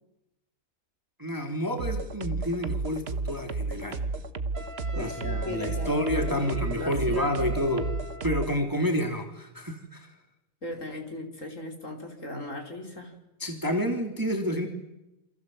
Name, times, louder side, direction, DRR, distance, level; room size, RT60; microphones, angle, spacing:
voice 1, 1.2-4.0 4.9-7.9 8.2-10.1 13.4-14.7, equal, 10° right, 4 dB, 2.9 m, -29 dB
sound 1, 1.8-8.6, right 3 dB, 35° right, 1.2 m, -32 dB
Wind instrument woodwind instrument, 4.5-8.4, right 1 dB, 60° right, 2.6 m, -43 dB
voice 2, 4.9-7.6 10.6-13.1, left 1 dB, 35° left, 2 dB, 4.8 m, -38 dB
28.5 x 26.5 x 7.8 m, 0.93 s
omnidirectional pair, 2.2 m